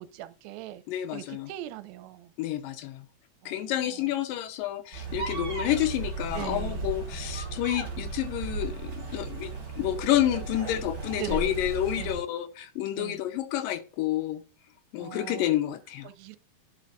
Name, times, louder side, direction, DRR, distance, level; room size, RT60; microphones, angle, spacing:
voice 1, 0.0-0.8 1.1-2.3 3.4-3.6 3.9-4.0 6.3-6.8 11.2-11.6 12.0-12.2 13.0-13.2 15.0-15.5 16.0-16.4, right 12 dB, 90° right, 2.4 m, -39 dB
voice 2, 0.9-1.5 2.4-3.0 3.5-14.4 14.9-16.1, left 13 dB, 75° left, 2.3 m, -29 dB
sound 1, 4.9-12.2, right 4 dB, 35° right, 2.8 m, -35 dB
10.5 x 5.8 x 2.5 m
omnidirectional pair, 4.2 m